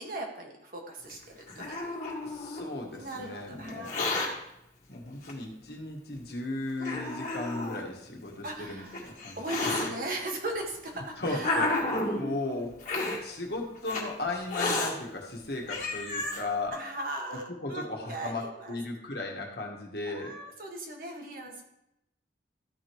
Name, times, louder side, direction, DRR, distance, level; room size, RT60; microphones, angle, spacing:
voice 1, 0.0-1.9 2.9-4.3 8.4-11.6 12.0-12.8 16.7-18.8 20.0-21.6, right 1 dB, 50° right, 1 dB, 1.6 m, -39 dB
Hiss, 1.1-2.7 3.7-4.3 5.2-5.3 6.2-6.3 6.8-7.8 8.7-9.9 10.7-12.2 12.8-13.2 13.9-14.0 14.5-14.9 15.4-15.5 15.7-16.4, left 2 dB, 45° left, 1.8 m, -31 dB
voice 2, 2.2-4.0 4.9-9.9 10.9-12.7 13.2-16.8 17.3-20.3, left 2 dB, 60° left, 0 dB, 1.7 m, -36 dB
13.0 x 5.1 x 4.6 m, 0.85 s
head